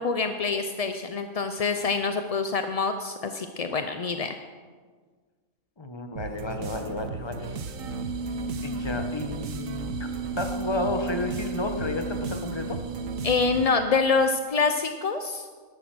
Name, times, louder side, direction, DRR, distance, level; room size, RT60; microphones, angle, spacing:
voice 1, 0.0-4.4 13.2-15.5, left 4 dB, 45° left, 7 dB, 0.5 m, -26 dB
voice 2, 5.8-7.6 8.6-10.1 10.4-12.8, left 2 dB, 20° left, 6 dB, 1.0 m, -32 dB
sound 1, 6.2-13.8, right 4 dB, 80° right, 1.3 m, -37 dB
sound 2, 7.4-13.9, right 3 dB, 60° right, 1.1 m, -35 dB
13.5 x 11.0 x 6.2 m, 1.5 s
omnidirectional pair, 1.4 m